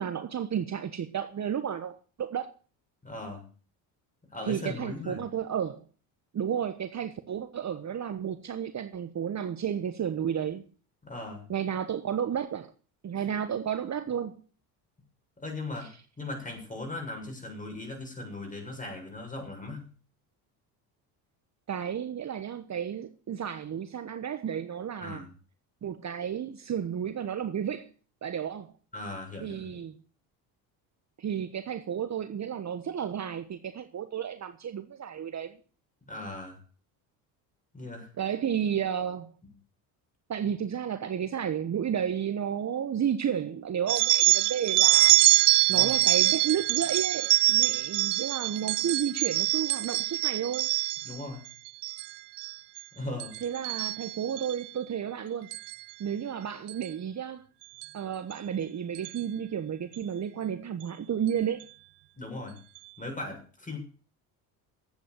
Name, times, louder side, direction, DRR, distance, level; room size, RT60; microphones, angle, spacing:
voice 1, 0.0-2.5 4.5-5.8 6.3-10.6 11.5-12.7 13.0-14.4 15.8-15.9 21.7-25.2 25.8-27.9 28.2-28.7 29.4-30.0 31.2-35.6 38.2-39.3 40.3-45.2 45.7-50.7 53.4-55.6 56.0-57.4 57.9-61.6, right 8 dB, 35° right, 1.2 m, -32 dB
voice 2, 3.0-3.5 4.3-5.2 11.0-11.4 15.4-15.9 16.2-19.9 25.0-25.3 28.9-29.8 36.1-36.6 37.7-38.1 45.7-46.0 51.0-51.4 53.0-53.3 62.1-62.6 63.0-63.8, left 2 dB, 15° left, 7.3 m, -38 dB
sound 1, 43.9-51.2 51.7-52.1 52.4-52.8 53.2-54.5 55.5-55.7 56.7-56.9 57.8-57.9 58.3-58.4 58.9-59.2, right 20 dB, 65° right, 0.7 m, -24 dB
11.0 x 8.4 x 8.0 m
supercardioid pair, 80°, 45 cm